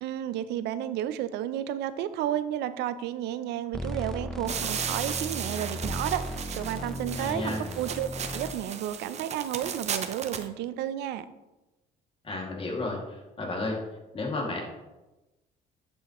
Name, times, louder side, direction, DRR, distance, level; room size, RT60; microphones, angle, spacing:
voice 1, 0.0-11.3, right 11 dB, 80° right, 14 dB, 0.5 m, -32 dB
sound 1, 3.7-8.5, equal, 5° left, 0.8 m, -36 dB
sound 2, 4.5-10.5, right 7 dB, 40° right, 0.6 m, -35 dB
voice 2, 7.2-7.6 12.2-13.8 14.1-14.6, left 2 dB, 35° left, -1 dB, 2.2 m, -32 dB
9.9 x 5.6 x 3.0 m, 1.0 s
cardioid pair, 110°, 17 cm